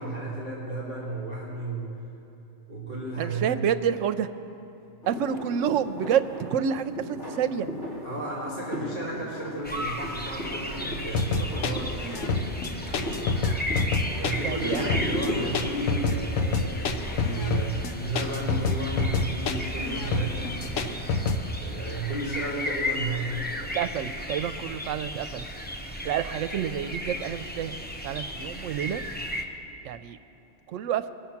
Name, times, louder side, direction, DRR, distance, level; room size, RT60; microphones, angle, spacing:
voice 1, 0.0-1.9 2.7-3.5 8.0-11.9 14.1-17.0 17.2-20.8 21.4-23.6, right 2 dB, 45° left, -7 dB, 2.6 m, -34 dB
voice 2, 3.2-4.3 5.1-7.7 14.4-15.0 23.6-25.5 26.0-27.7 28.0-29.0 29.8-30.2 30.7-31.0, right 8 dB, 80° right, 11 dB, 0.9 m, -28 dB
sound 1, 5.0-17.7, equal, 65° left, 2.2 m, -37 dB
sound 2, 9.6-29.4, left 1 dB, 10° left, 0.7 m, -35 dB
sound 3, 11.1-21.4, left 4 dB, 90° left, 1.2 m, -27 dB
21.5 x 7.3 x 5.9 m, 3.0 s
omnidirectional pair, 1.3 m